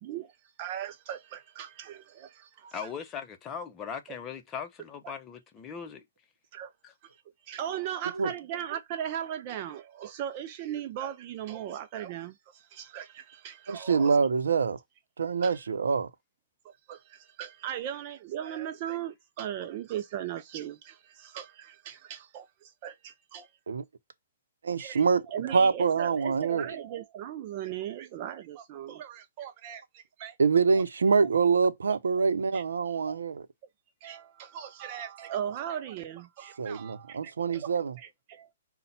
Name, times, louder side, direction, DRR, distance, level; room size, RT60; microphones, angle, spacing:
voice 1, 0.0-2.8 4.1-4.2 6.5-6.7 7.0-7.2 7.4-14.2 15.4-15.6 16.6-23.5 24.8-30.4 30.7-30.8 32.5-33.2 34.0-37.7 38.0-38.5, right 10 dB, 40° right, 0.4 m, -38 dB
voice 2, 2.7-6.0 6.8-6.9, left 7 dB, 20° left, 0.7 m, -39 dB
voice 3, 13.7-14.8 15.2-16.1 23.7-23.8 24.6-25.2 25.5-26.7 30.4-33.5 36.6-37.9, right 5 dB, 80° right, 0.7 m, -25 dB
5.3 x 2.2 x 4.2 m
hypercardioid pair, 140°, 0 cm